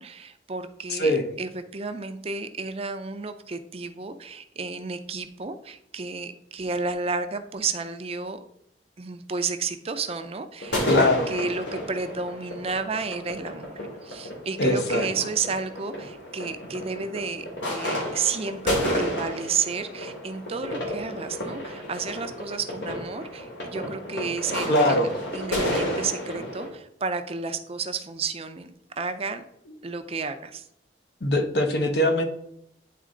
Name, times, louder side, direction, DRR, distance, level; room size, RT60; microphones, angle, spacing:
voice 1, 0.0-8.4 9.0-29.4 29.8-30.7, right 4 dB, 35° right, 9 dB, 0.5 m, -32 dB
voice 2, 0.9-1.3 10.9-11.3 14.6-15.1 24.7-25.1 31.2-32.2, left 1 dB, 65° left, 6 dB, 1.0 m, -21 dB
sound 1, 10.6-26.7, equal, 85° left, 2.3 m, -31 dB
9.3 x 4.2 x 3.8 m, 0.73 s
head